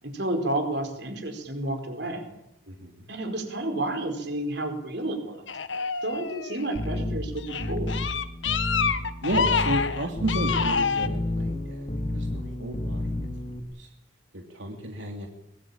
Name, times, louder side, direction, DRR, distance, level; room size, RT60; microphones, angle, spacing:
voice 1, 0.0-2.3 3.1-5.4 6.0-7.9, right 1 dB, 60° right, 6 dB, 4.9 m, -31 dB
voice 2, 2.7-3.1 9.2-11.9 12.1-13.1 13.4-13.9 14.3-15.3, right 1 dB, 85° right, 3 dB, 2.9 m, -33 dB
sound 1, 5.5-6.8 7.4-11.1, left 5 dB, 90° left, 1.5 m, -27 dB
sound 2, 6.7-13.6, left 1 dB, 35° left, 2.7 m, -31 dB
23.0 x 22.0 x 8.9 m, 0.83 s
head